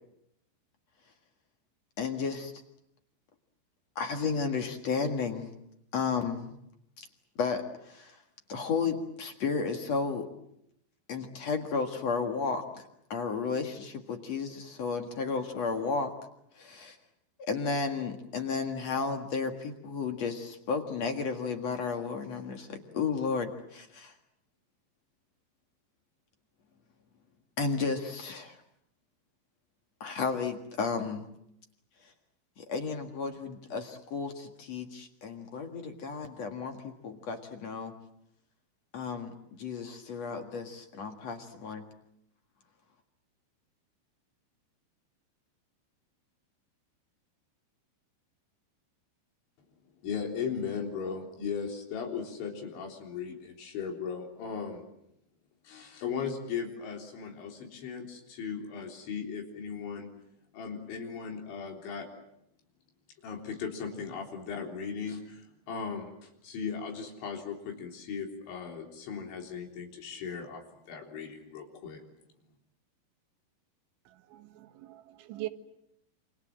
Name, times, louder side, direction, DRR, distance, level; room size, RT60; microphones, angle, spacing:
voice 1, 2.0-2.5 4.0-5.5 5.9-6.5 7.0-7.1 7.4-7.6 7.9-8.1 8.5-10.3 11.1-12.8 13.1-16.1 16.6-17.0 17.4-24.1 27.6-28.6 30.0-31.2 32.6-37.9 38.9-41.8, left 5 dB, 50° left, 2.1 m, -33 dB
voice 2, 50.0-54.8 55.6-60.1 60.5-62.1 63.2-72.0, left 6 dB, 75° left, 6.0 m, -37 dB
voice 3, 74.3-75.5, right 17 dB, 85° right, 3.7 m, -41 dB
28.0 x 26.0 x 7.6 m
omnidirectional pair, 5.4 m